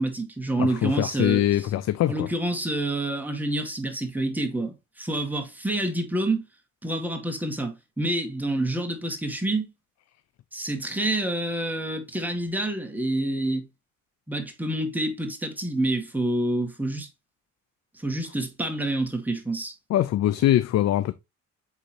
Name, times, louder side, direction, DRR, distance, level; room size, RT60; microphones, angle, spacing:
voice 1, 0.0-1.4 2.1-6.4 6.8-9.7 10.5-13.7 14.3-17.1 17.9-19.7, right 1 dB, 5° right, 1.9 m, -28 dB
voice 2, 0.6-2.3 19.9-21.1, left 13 dB, 60° left, 0.5 m, -23 dB
8.0 x 3.8 x 3.1 m
cardioid pair, 90°, 30 cm